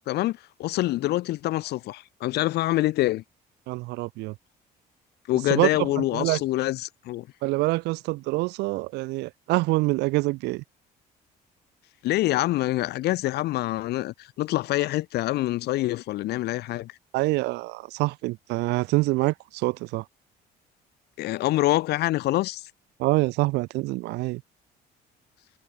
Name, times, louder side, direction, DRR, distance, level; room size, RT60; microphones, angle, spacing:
voice 1, 0.1-3.2 5.3-7.3 12.0-16.9 21.2-22.6, left 16 dB, 75° left, 1.5 m, -26 dB
voice 2, 3.7-4.3 5.5-5.7 6.0-6.4 7.4-10.6 17.1-20.0 23.0-24.4, right 21 dB, 85° right, 0.5 m, -26 dB
cardioid pair, 110°, 17 cm